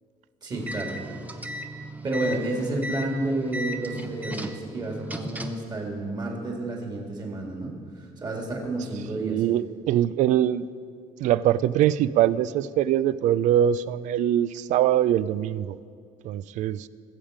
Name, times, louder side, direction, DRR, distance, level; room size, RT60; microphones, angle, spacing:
voice 1, 0.4-1.0 2.0-9.4, right 2 dB, 30° right, 0 dB, 2.4 m, -30 dB
sound 1, 0.5-5.7, right 1 dB, 10° right, 0.7 m, -36 dB
voice 2, 9.1-10.7 11.2-15.8 16.2-16.9, right 11 dB, 65° right, 18 dB, 0.4 m, -23 dB
20.5 x 7.3 x 5.1 m, 2.3 s
cardioid pair, 135°, 14 cm